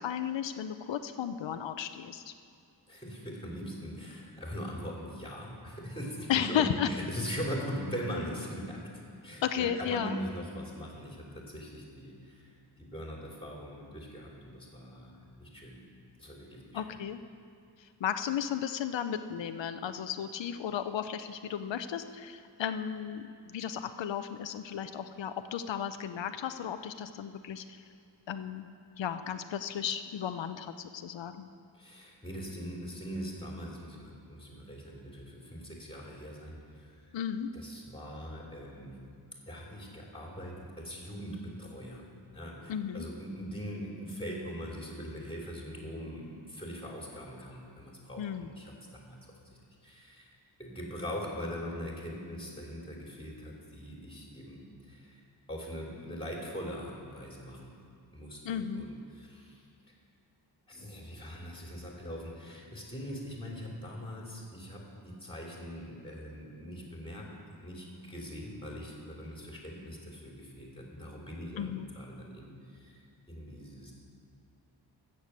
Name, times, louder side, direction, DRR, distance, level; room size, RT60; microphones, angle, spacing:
voice 1, 0.0-2.3 6.3-6.9 9.4-10.2 16.7-17.2 17.8-27.8 28.3-28.7 29.0-31.5 37.1-37.5 42.7-43.1 48.2-48.5 58.4-58.9 71.6-71.9, left 9 dB, 90° left, 9 dB, 0.6 m, -34 dB
voice 2, 2.9-15.8 16.2-17.0 31.7-37.0 37.5-39.0 39.4-42.1 42.3-50.3 50.6-55.2 55.5-57.8 58.1-59.7 60.7-67.3 67.6-73.0 73.3-73.9, equal, 10° left, -2 dB, 2.9 m, -41 dB
14.0 x 6.9 x 8.1 m, 2.5 s
wide cardioid pair, 135°, 43 cm